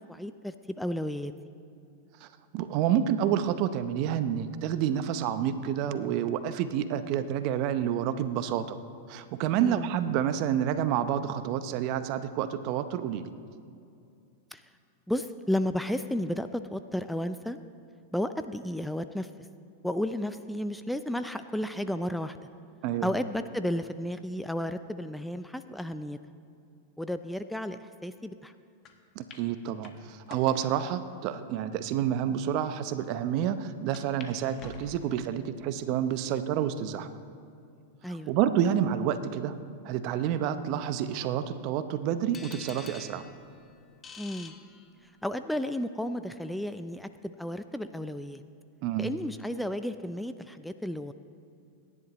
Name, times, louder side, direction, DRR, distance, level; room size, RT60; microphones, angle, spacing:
voice 1, 0.1-1.3 9.6-9.9 14.5-14.6 15.1-17.6 18.1-19.3 19.8-22.4 23.0-26.2 27.0-28.5 38.0-38.3 44.2-44.5 45.2-48.4 49.0-51.1, left 1 dB, ahead, 10 dB, 0.5 m, -33 dB
voice 2, 2.5-8.8 9.1-13.3 22.8-23.1 29.2-37.1 38.1-39.5 39.8-43.2 48.8-49.1, right 9 dB, 50° right, 11 dB, 0.8 m, -29 dB
sound 1, 28.8-28.9 29.3-29.4 29.8-30.7 31.4-31.5 32.2-32.3 32.6-32.7 33.9-34.3 34.6-35.4 35.9-36.3 36.9-37.0 38.1-38.5, left 6 dB, 35° left, 1.6 m, -48 dB
sound 2, 42.3-45.3, left 4 dB, 20° left, 0.9 m, -48 dB
27.0 x 11.0 x 3.1 m, 2.5 s
hypercardioid pair, 100°, 0 cm